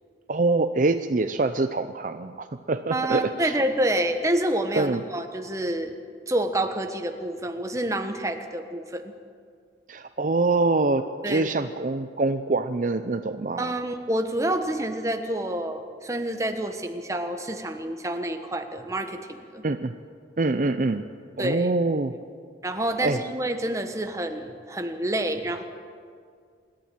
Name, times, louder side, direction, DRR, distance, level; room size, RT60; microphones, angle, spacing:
voice 1, 0.3-3.6 4.8-5.0 9.9-13.7 19.6-19.9 20.4-21.0 21.4-22.1 23.0-23.2, right 3 dB, 45° right, 9 dB, 0.6 m, -25 dB
voice 2, 2.9-5.9 6.3-9.1 11.2-11.4 13.6-19.6 21.4-21.7 22.6-25.6, right 1 dB, 15° right, 6 dB, 1.2 m, -28 dB
26.5 x 11.5 x 9.0 m, 2.2 s
head